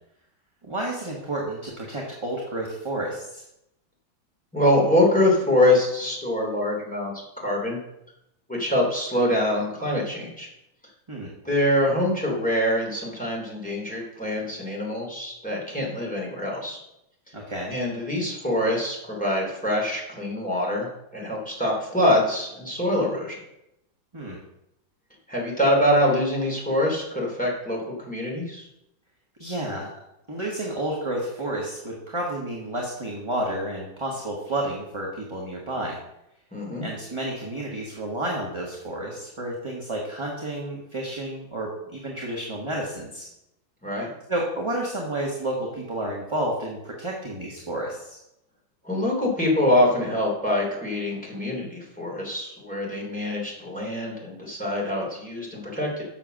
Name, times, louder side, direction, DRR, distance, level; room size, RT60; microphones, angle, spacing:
voice 1, 0.6-3.4 11.1-11.3 17.3-17.7 24.1-24.4 29.4-29.9 30.3-36.0 36.8-43.3 44.3-48.2, right 1 dB, 15° right, -3 dB, 1.3 m, -31 dB
voice 2, 4.5-7.8 8.5-10.5 11.4-16.8 17.7-23.4 25.3-28.7 36.5-36.9 43.8-44.1 48.8-56.0, left 1 dB, 5° left, -3 dB, 3.1 m, -24 dB
7.5 x 6.8 x 6.4 m, 0.84 s
omnidirectional pair, 2.2 m